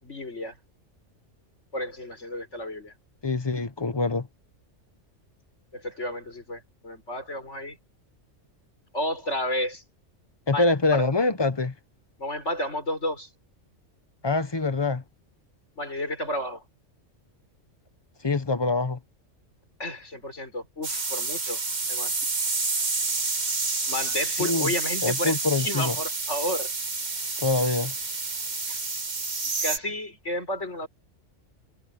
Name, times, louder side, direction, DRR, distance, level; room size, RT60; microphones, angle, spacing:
voice 1, 0.0-0.6 1.7-2.9 5.7-7.8 8.9-9.8 10.5-11.1 12.2-13.3 15.8-16.6 19.8-21.6 21.9-22.2 23.9-26.7 28.6-28.8 29.6-30.9, left 1 dB, 65° left, 6.8 m, -32 dB
voice 2, 3.2-4.3 10.5-11.7 14.2-15.0 18.2-19.0 24.4-24.7 25.0-25.9 27.4-27.9, left 3 dB, 20° left, 1.0 m, -25 dB
sound 1, 20.8-29.8, right 3 dB, 35° right, 1.6 m, -29 dB
omnidirectional pair, 1.3 m